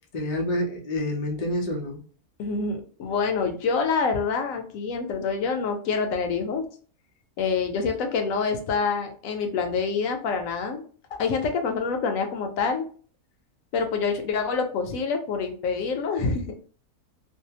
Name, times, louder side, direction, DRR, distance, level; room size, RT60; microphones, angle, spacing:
voice 1, 0.1-2.0, left 1 dB, 85° left, 0 dB, 0.3 m, -28 dB
voice 2, 2.4-6.6 7.4-10.8 11.1-12.8 13.7-16.6, left 5 dB, 70° left, 5 dB, 0.9 m, -26 dB
2.6 x 2.2 x 2.7 m, 0.42 s
omnidirectional pair, 1.6 m